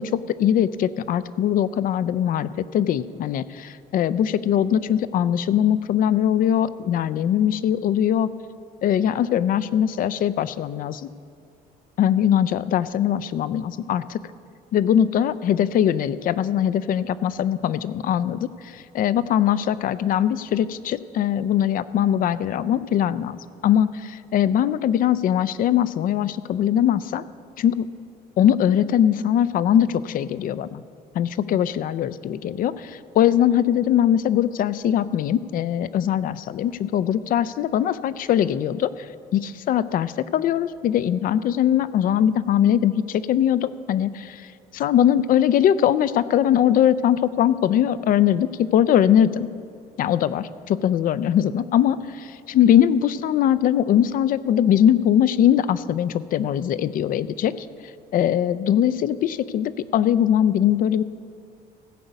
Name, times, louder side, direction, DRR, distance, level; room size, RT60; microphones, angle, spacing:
voice 1, 0.0-8.3 8.8-11.1 12.0-14.2 14.7-27.2 27.6-27.9 28.4-30.8 31.1-39.1 39.3-44.5 44.7-49.5 50.0-52.0 52.6-57.7 58.1-61.0, left 10 dB, 55° left, 16 dB, 0.4 m, -21 dB
15.5 x 5.3 x 8.0 m, 2.3 s
cardioid pair, 110°, 17 cm